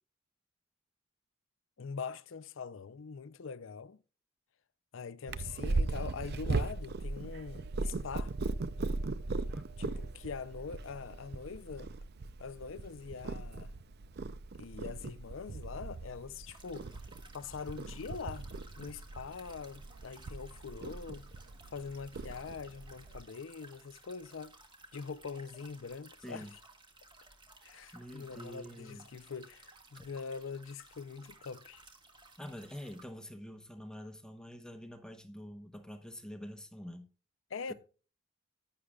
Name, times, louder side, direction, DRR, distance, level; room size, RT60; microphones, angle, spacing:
voice 1, 1.8-4.0 4.9-8.3 9.8-11.9 12.4-13.7 14.6-16.9 17.3-18.5 18.8-21.3 21.7-24.5 24.9-26.6 27.6-31.8 37.5-37.7, left 5 dB, 80° left, 0.5 m, -43 dB
Purr, 5.3-23.2, right 3 dB, 55° right, 0.5 m, -38 dB
sound 1, 16.5-33.1, right 2 dB, 25° right, 1.7 m, -58 dB
voice 2, 26.2-26.5 27.9-29.1 29.9-30.1 32.4-37.1 37.7-37.8, equal, 5° left, 0.9 m, -46 dB
11.5 x 10.0 x 2.3 m
head